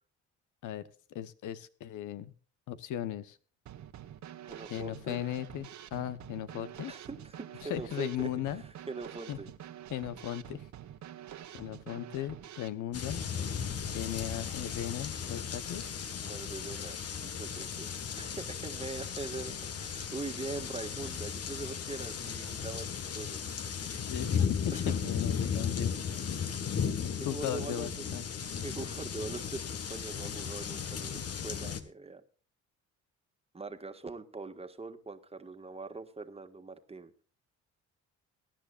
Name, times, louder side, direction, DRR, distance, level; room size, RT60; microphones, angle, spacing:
voice 1, 1.1-2.3 2.7-3.4 4.7-6.9 7.6-8.6 9.3-9.4 9.9-10.7 11.5-13.2 13.9-15.8 24.0-25.9 27.0-28.3, left 11 dB, 80° left, 13 dB, 1.0 m, -37 dB
Drum kit / Snare drum, 3.7-12.7, right 11 dB, 70° right, 1.4 m, -47 dB
voice 2, 4.4-5.2 6.9-9.5 16.2-23.4 24.7-24.9 25.8-25.9 26.3-26.6 27.2-28.0 28.6-32.2 33.5-37.1, right 3 dB, 20° right, 8 dB, 1.7 m, -42 dB
sound 1, 12.9-31.8, left 7 dB, 50° left, 1.5 m, -36 dB
22.5 x 10.5 x 2.5 m, 0.40 s
cardioid pair, 90°, 30 cm